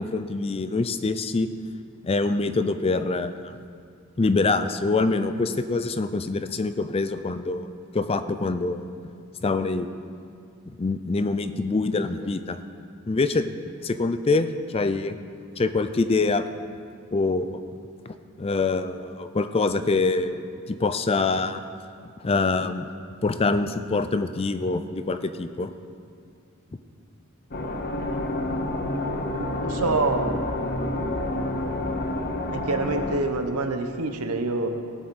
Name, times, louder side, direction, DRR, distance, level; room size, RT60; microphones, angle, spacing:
voice 1, 0.0-1.5 2.0-3.5 4.2-7.7 7.9-8.9 9.4-9.9 10.8-12.6 13.1-13.5 13.8-15.2 15.6-16.5 17.1-17.6 18.4-21.6 22.2-22.9 23.2-25.7, left 3 dB, 25° left, 10 dB, 0.4 m, -25 dB
sound 1, 27.5-33.2, left 1 dB, 45° left, 1.0 m, -28 dB
voice 2, 28.8-30.3 32.5-34.7, right 3 dB, 85° right, 7 dB, 0.9 m, -27 dB
17.5 x 7.7 x 4.2 m, 2.3 s
head